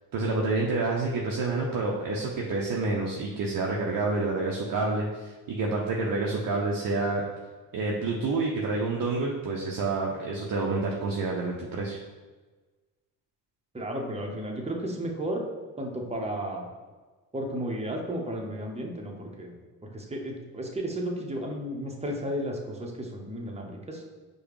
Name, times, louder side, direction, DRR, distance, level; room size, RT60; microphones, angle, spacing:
voice 1, 0.1-7.2 7.7-12.0, right 3 dB, 50° right, -2 dB, 0.7 m, -28 dB
voice 2, 13.7-15.4 15.8-16.7 17.3-19.6 19.8-24.0, right 1 dB, 15° right, 0 dB, 0.9 m, -33 dB
4.8 x 2.3 x 3.1 m, 1.3 s
hypercardioid pair, 40°, 45 cm